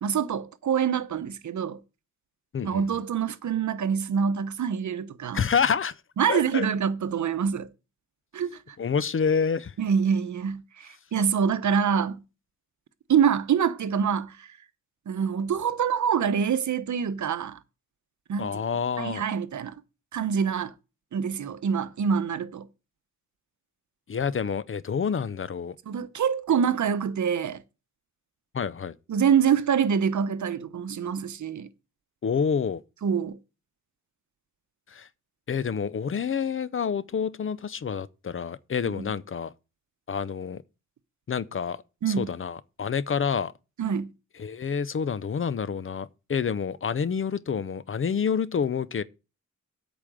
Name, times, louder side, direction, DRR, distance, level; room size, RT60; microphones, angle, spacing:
voice 1, 0.0-1.8 2.6-5.5 6.2-7.7 8.3-8.8 9.8-12.2 13.1-14.5 15.1-17.6 18.3-18.6 19.0-19.7 20.1-20.7 21.1-22.7 25.9-27.6 29.1-31.7 33.0-33.4 38.9-39.1 42.0-42.3 43.8-44.1, right 7 dB, 65° right, 0.9 m, -26 dB
voice 2, 2.5-2.8 5.3-5.9 6.3-6.7 8.8-9.7 18.4-19.2 24.1-25.7 28.5-28.9 32.2-32.8 34.9-35.1 35.5-39.5 40.1-40.6 41.3-41.8 42.1-43.5 44.4-49.0, left 6 dB, 40° left, 0.6 m, -28 dB
8.5 x 5.1 x 7.6 m
wide cardioid pair, 105°, 31 cm